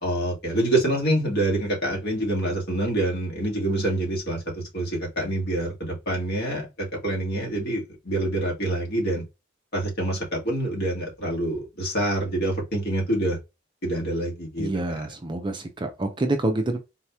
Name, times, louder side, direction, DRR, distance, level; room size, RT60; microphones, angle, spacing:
voice 1, 0.0-9.2 9.7-13.4 13.8-15.0, right 1 dB, 55° left, 1.6 m, -26 dB
voice 2, 14.6-16.8, right 2 dB, 25° right, 0.5 m, -27 dB
4.0 x 2.9 x 2.2 m
head